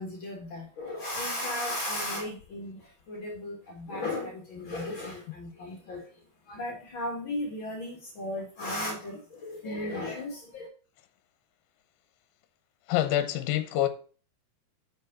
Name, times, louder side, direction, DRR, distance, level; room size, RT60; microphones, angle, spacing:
voice 1, 0.0-10.7, left 1 dB, 50° left, 1.5 m, -35 dB
voice 2, 12.9-13.9, left 13 dB, 75° left, 2.4 m, -26 dB
6.5 x 5.3 x 6.6 m
omnidirectional pair, 4.8 m